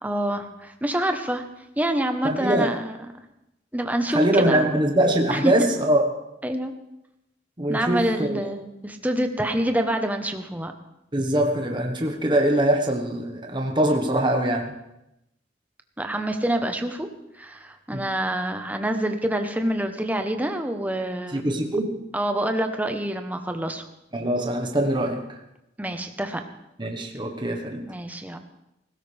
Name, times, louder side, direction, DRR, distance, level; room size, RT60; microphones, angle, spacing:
voice 1, 0.0-1.4 1.8-3.0 3.7-4.8 5.3-5.5 6.4-6.7 7.7-10.7 16.0-17.1 17.4-21.4 22.1-23.8 25.8-26.4 27.8-28.4, right 1 dB, 10° right, 6 dB, 1.0 m, -26 dB
voice 2, 2.2-2.8 4.1-6.1 7.6-8.4 11.1-14.8 17.9-18.0 21.3-22.0 24.1-25.2 26.8-27.8, right 1 dB, 25° right, 2 dB, 1.3 m, -23 dB
18.5 x 16.0 x 3.5 m, 0.87 s
head